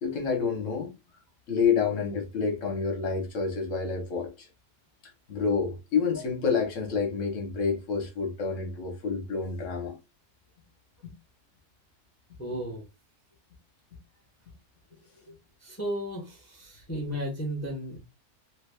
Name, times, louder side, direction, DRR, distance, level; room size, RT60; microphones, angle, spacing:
voice 1, 0.0-0.9 1.5-4.5 5.3-10.0 11.0-11.1 15.3-15.4, left 5 dB, 55° left, 1.3 m, -28 dB
voice 2, 12.4-12.8 15.6-18.0, equal, 15° left, 0.6 m, -34 dB
3.2 x 2.3 x 3.3 m
omnidirectional pair, 1.6 m